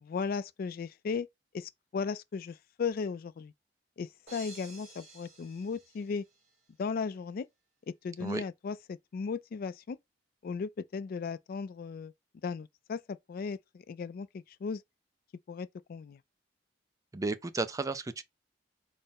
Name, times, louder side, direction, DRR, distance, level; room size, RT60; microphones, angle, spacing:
voice 1, 0.0-1.3 1.5-3.5 4.0-6.2 6.8-7.5 8.0-10.0 10.4-12.1 12.4-13.6 13.9-14.8 15.5-16.2, left 5 dB, 55° left, 0.3 m, -36 dB
sound 1, 4.3-6.5, right 2 dB, 40° right, 1.6 m, -52 dB
voice 2, 17.1-18.2, right 3 dB, 20° right, 0.4 m, -33 dB
4.1 x 2.0 x 3.7 m
head